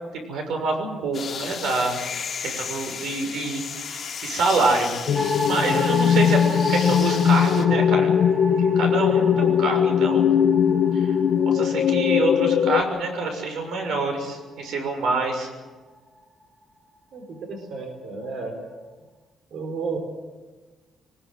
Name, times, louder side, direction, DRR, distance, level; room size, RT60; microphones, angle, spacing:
voice 1, 0.1-2.0 2.4-4.9 5.4-6.4 6.7-8.1 8.7-10.3 10.9-11.1 11.4-15.5, right 3 dB, 80° right, 5 dB, 6.4 m, -26 dB
sound 1, 1.1-7.6, left 6 dB, 35° left, 2.9 m, -34 dB
sound 2, 5.1-12.8, left 8 dB, 60° left, 1.2 m, -20 dB
sound 3, 5.1-15.5, equal, 25° right, 2.8 m, -33 dB
voice 2, 17.1-18.6 19.5-20.0, right 4 dB, 55° right, 4 dB, 4.2 m, -32 dB
23.0 x 20.5 x 8.0 m, 1.3 s
cardioid pair, 155°, 0 cm